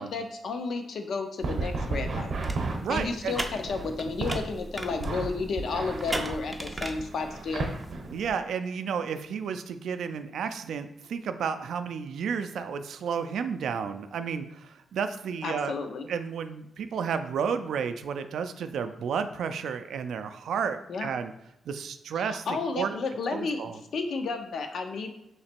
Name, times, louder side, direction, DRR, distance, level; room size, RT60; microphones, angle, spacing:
voice 1, 0.0-2.3 2.9-7.7 15.4-16.1 20.9-21.1 22.2-25.1, left 4 dB, 60° left, 6 dB, 0.5 m, -32 dB
sound 1, 1.4-4.4 5.0-8.3, right 3 dB, 60° right, 0.8 m, -33 dB
sound 2, 2.3-7.9, right 1 dB, 10° right, 0.4 m, -38 dB
voice 2, 2.8-3.4 8.1-15.7 16.1-21.3 21.7-23.0 23.3-23.8, right 6 dB, 80° right, 9 dB, 0.3 m, -32 dB
3.1 x 2.9 x 4.4 m, 0.86 s
wide cardioid pair, 155°, 0 cm